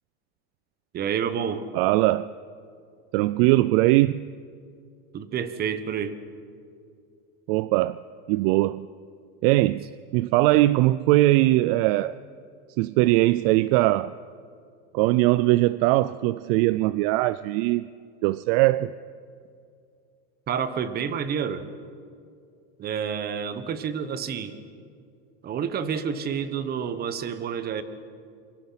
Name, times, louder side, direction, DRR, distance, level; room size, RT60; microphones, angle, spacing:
voice 1, 0.9-1.6 5.1-6.2 20.5-21.7 22.8-24.5 25.4-27.8, right 7 dB, 30° right, 1.4 m, -29 dB
voice 2, 1.7-2.3 3.1-4.3 7.5-8.0 8.3-8.9 9.4-12.2 12.8-14.1 14.9-17.9 18.2-18.9, right 18 dB, 60° right, 0.5 m, -21 dB
27.0 x 23.5 x 5.9 m
supercardioid pair, 150°, 32 cm